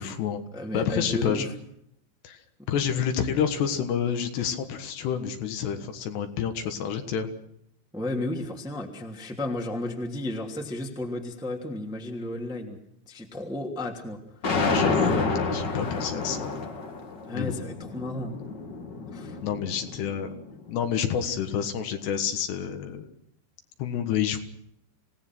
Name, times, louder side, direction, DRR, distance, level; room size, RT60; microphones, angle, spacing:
voice 1, 0.0-0.4 0.7-1.5 2.2-2.4 2.7-7.3 14.5-15.2 15.5-16.5 17.3-17.6 19.4-20.3 20.7-23.1 23.8-24.4, left 8 dB, 70° left, 7 dB, 3.5 m, -28 dB
voice 2, 0.5-1.5 7.9-12.8 13.1-14.2 17.3-18.3 19.1-19.4, left 1 dB, ahead, 1 dB, 1.6 m, -33 dB
sound 1, 14.4-20.6, left 4 dB, 50° left, 1.3 m, -29 dB
27.0 x 17.5 x 6.2 m, 0.72 s
omnidirectional pair, 5.2 m